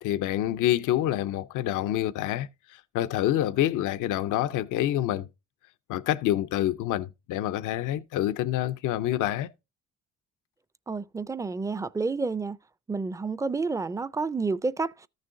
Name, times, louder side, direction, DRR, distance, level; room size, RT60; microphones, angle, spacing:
voice 1, 0.0-5.3 5.9-9.5, left 13 dB, 85° left, 0.6 m, -27 dB
voice 2, 10.9-12.6 12.9-15.1, right 4 dB, 10° right, 0.3 m, -30 dB
14.0 x 6.5 x 2.6 m
cardioid pair, 90°, 30 cm